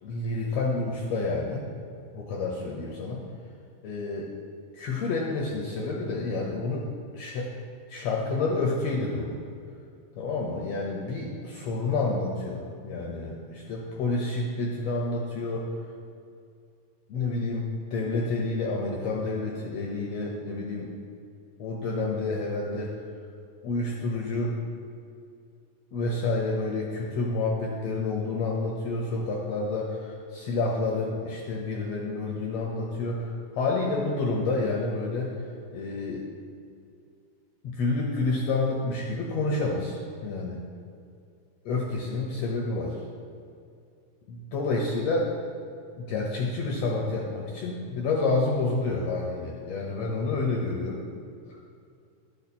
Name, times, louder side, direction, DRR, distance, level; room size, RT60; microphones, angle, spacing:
voice 1, 0.0-1.7 2.1-3.2 3.8-4.3 4.7-6.8 7.1-7.5 7.9-9.4 10.2-15.7 17.1-20.9 21.6-22.9 23.6-24.6 25.9-35.3 35.7-36.2 37.6-40.6 41.6-43.0 44.3-45.4 46.0-51.0 51.5-51.6, left 3 dB, 75° left, -1 dB, 1.5 m, -29 dB
11.0 x 5.8 x 4.2 m, 2.4 s
omnidirectional pair, 3.8 m